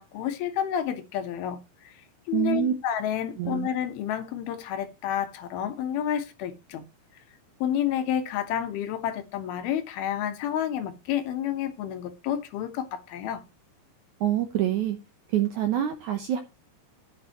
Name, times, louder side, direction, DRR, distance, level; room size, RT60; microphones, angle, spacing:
voice 1, 0.0-1.6 1.8-1.9 2.3-6.8 7.6-13.4, left 10 dB, 75° left, 2.9 m, -30 dB
voice 2, 2.3-2.7 3.4-3.7 14.2-15.0 15.3-16.4, right 11 dB, 75° right, 1.8 m, -26 dB
14.5 x 8.7 x 3.0 m
omnidirectional pair, 4.6 m